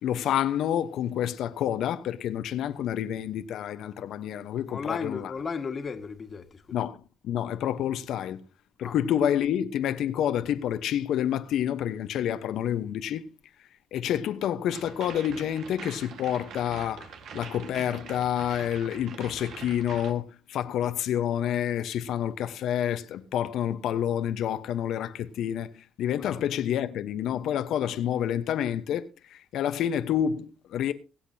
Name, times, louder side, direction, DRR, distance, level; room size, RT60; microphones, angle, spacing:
voice 1, 0.0-5.3 6.7-8.4 8.8-13.3 13.9-17.1 17.3-30.9, left 10 dB, 80° left, 1.0 m, -28 dB
voice 2, 4.6-6.8 8.8-9.0 26.2-26.4, left 5 dB, 45° left, 1.8 m, -35 dB
sound 1, 14.7-20.1, right 6 dB, 75° right, 1.7 m, -44 dB
23.0 x 8.2 x 2.8 m
cardioid pair, 90°, 0 cm